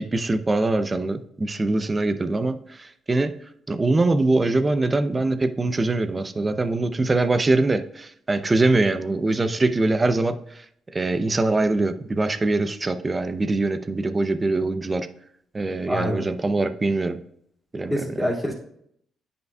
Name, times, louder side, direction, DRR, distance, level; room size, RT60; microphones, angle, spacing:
voice 1, 0.0-3.3 3.7-10.4 10.9-15.1 15.5-17.2 17.7-18.2, right 2 dB, 25° right, 10 dB, 0.6 m, -23 dB
voice 2, 15.9-16.3 17.9-18.5, equal, 10° left, -5 dB, 2.3 m, -25 dB
9.3 x 5.2 x 2.3 m, 0.70 s
cardioid pair, 90°, 0 cm